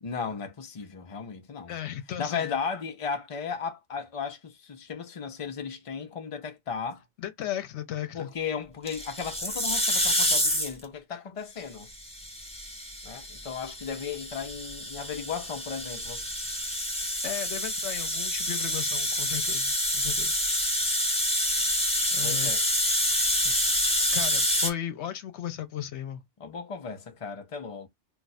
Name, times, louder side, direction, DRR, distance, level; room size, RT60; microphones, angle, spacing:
voice 1, 0.0-1.8 2.2-7.0 8.1-11.9 13.0-16.3 22.2-22.6 23.4-23.6 26.4-27.9, left 6 dB, 40° left, 0.5 m, -35 dB
voice 2, 1.7-2.5 7.2-8.3 17.0-20.4 22.1-22.5 24.1-26.2, left 10 dB, 70° left, 1.0 m, -36 dB
sound 1, 8.9-10.8 11.9-24.7, equal, 5° left, 0.7 m, -28 dB
2.4 x 2.4 x 4.0 m
omnidirectional pair, 1.2 m